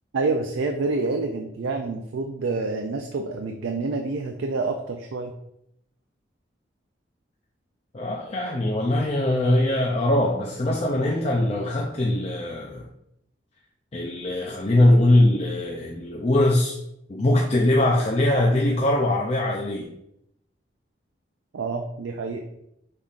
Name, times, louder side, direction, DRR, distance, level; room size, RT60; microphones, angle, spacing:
voice 1, 0.1-5.3 21.5-22.4, right 3 dB, 90° right, 0.4 m, -27 dB
voice 2, 7.9-12.9 13.9-16.8 17.1-19.9, left 1 dB, 35° left, 0.4 m, -21 dB
5.5 x 3.4 x 2.4 m
head